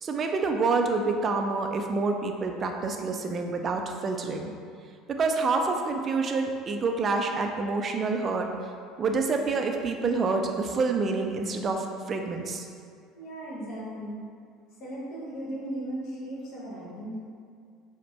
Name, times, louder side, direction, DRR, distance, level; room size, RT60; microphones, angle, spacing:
voice 1, 0.0-4.5 5.1-8.5 9.0-12.7, right 4 dB, 40° right, 4 dB, 0.4 m, -27 dB
voice 2, 13.1-14.2 14.8-17.2, right 1 dB, 55° left, -6 dB, 1.3 m, -36 dB
5.0 x 2.1 x 3.2 m, 2.2 s
hypercardioid pair, 70°, 0 cm